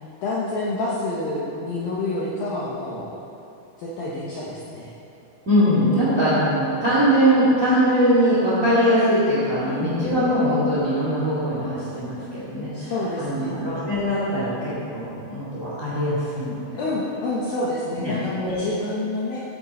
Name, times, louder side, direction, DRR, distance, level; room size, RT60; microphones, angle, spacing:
voice 1, 0.2-3.1 3.8-4.9 9.6-9.9 10.1-10.3 12.7-13.6 16.8-19.4, left 2 dB, 75° left, -6 dB, 2.2 m, -28 dB
voice 2, 5.4-12.9 13.2-16.7 18.0-18.6, equal, 40° right, -10 dB, 1.1 m, -21 dB
14.5 x 8.9 x 4.2 m, 2.9 s
omnidirectional pair, 5.6 m